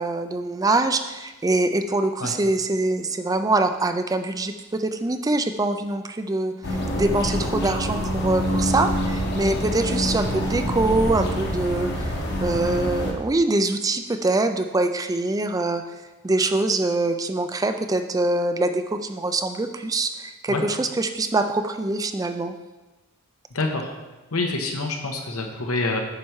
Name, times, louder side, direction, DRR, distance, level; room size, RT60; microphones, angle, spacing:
voice 1, 0.0-12.1 12.4-15.8 16.2-22.5, right 2 dB, 15° right, 8 dB, 0.4 m, -24 dB
sound 1, 6.6-13.1, equal, 50° left, 1.2 m, -26 dB
voice 2, 23.5-23.9 24.3-26.0, left 2 dB, 80° left, 2 dB, 1.2 m, -26 dB
8.7 x 5.8 x 4.7 m, 1.1 s
head